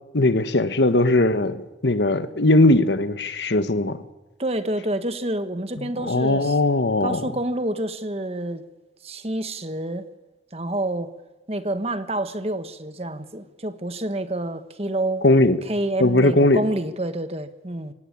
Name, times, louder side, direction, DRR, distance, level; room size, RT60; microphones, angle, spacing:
voice 1, 0.1-4.0 5.8-7.3 15.2-15.6 16.0-16.6, left 2 dB, 90° left, 11 dB, 1.4 m, -19 dB
voice 2, 4.4-6.6 7.0-8.6 9.0-10.1 10.5-11.1 11.5-15.2 15.6-17.9, right 1 dB, 35° right, 10 dB, 1.4 m, -28 dB
24.5 x 18.0 x 8.8 m, 1.1 s
head